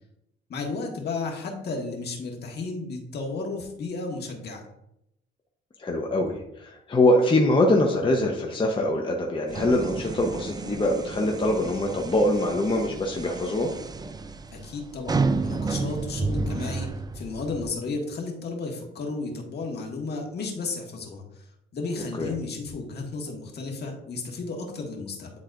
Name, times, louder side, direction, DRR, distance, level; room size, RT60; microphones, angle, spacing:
voice 1, 0.5-4.6 14.5-16.9 17.1-21.4 21.7-25.3, left 3 dB, 55° left, 0 dB, 1.7 m, -33 dB
voice 2, 5.8-13.7 22.2-22.3, left 1 dB, 25° left, 0 dB, 0.9 m, -23 dB
sound 1, 9.5-17.7, right 3 dB, 20° right, 0.4 m, -31 dB
9.7 x 4.0 x 2.6 m, 0.80 s
cardioid pair, 90°, 20 cm